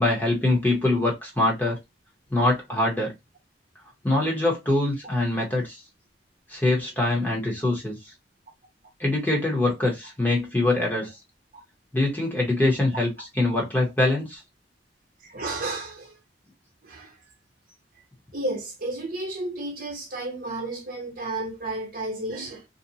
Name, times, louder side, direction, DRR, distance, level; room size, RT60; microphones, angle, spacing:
voice 1, 0.0-1.8 2.3-3.1 4.0-5.8 6.5-8.1 9.0-11.1 11.9-14.4, left 2 dB, 10° left, 0.8 m, -24 dB
voice 2, 15.2-16.1 16.8-17.1 18.3-22.7, right 2 dB, 50° right, 0.8 m, -32 dB
2.6 x 2.1 x 2.7 m
head